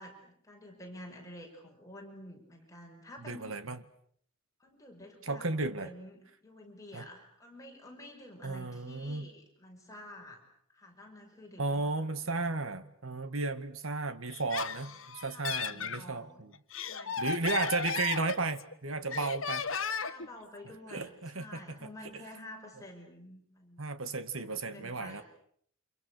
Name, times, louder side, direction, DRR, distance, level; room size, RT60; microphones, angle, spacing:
voice 1, 0.0-3.5 4.6-10.4 10.7-11.9 15.3-16.4 16.8-17.3 20.0-23.8 24.5-25.2, left 1 dB, 15° left, 1 dB, 6.2 m, -50 dB
voice 2, 3.2-3.8 5.2-5.9 6.9-7.1 8.4-9.3 11.6-16.5 17.2-19.7 20.9-21.8 23.8-25.2, right 3 dB, 75° right, 11 dB, 1.8 m, -34 dB
Laughter, 14.3-16.0 16.5-18.7 19.1-20.3, left 6 dB, 65° left, 1.4 m, -35 dB
29.0 x 27.0 x 6.6 m, 0.64 s
head